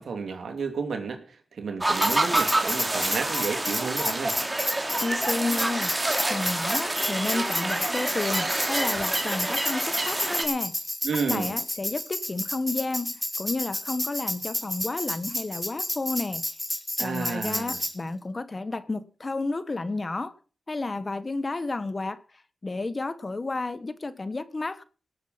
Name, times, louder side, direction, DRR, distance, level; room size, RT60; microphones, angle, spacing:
voice 1, 0.0-4.4 11.0-11.5 17.0-17.8, right 5 dB, 75° right, 2.9 m, -31 dB
sound 1, 1.8-10.4, right 2 dB, 20° right, 2.9 m, -27 dB
Tambourine, 2.0-17.9, left 1 dB, 10° left, 2.5 m, -31 dB
voice 2, 5.0-5.9 6.3-10.7 11.3-16.4 17.0-20.3 20.7-22.2 22.6-24.8, left 3 dB, 35° left, 1.4 m, -31 dB
18.5 x 8.7 x 5.9 m
cardioid pair, 70°, 0 cm